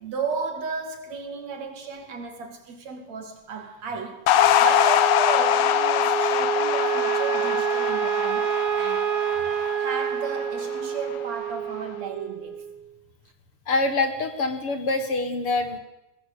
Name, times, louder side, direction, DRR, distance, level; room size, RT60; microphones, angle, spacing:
voice 1, 0.0-4.3 4.6-9.2 9.8-12.7, right 5 dB, 65° right, 3.8 m, -34 dB
sound 1, 4.3-10.8, left 11 dB, 75° left, 2.4 m, -23 dB
Wind instrument woodwind instrument, 4.4-12.8, right 9 dB, 80° right, 3.3 m, -28 dB
voice 2, 13.7-15.8, left 3 dB, 50° left, 2.7 m, -25 dB
22.5 x 18.5 x 8.8 m
omnidirectional pair, 3.4 m